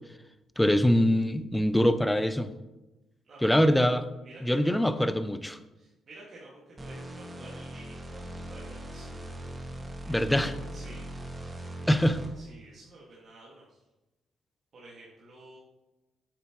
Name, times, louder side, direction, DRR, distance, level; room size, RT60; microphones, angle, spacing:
voice 1, 0.6-2.5 3.4-4.0 4.4-5.6 10.1-10.5 11.9-12.2, equal, 5° left, 11 dB, 0.6 m, -23 dB
voice 2, 3.2-3.8 4.2-4.8 5.8-11.1 12.3-13.8 14.7-15.6, right 2 dB, 50° right, -7 dB, 1.9 m, -51 dB
sound 1, 6.8-12.5, right 1 dB, 20° right, 1.4 m, -40 dB
8.6 x 7.1 x 3.1 m, 1.0 s
cardioid pair, 90°, 0 cm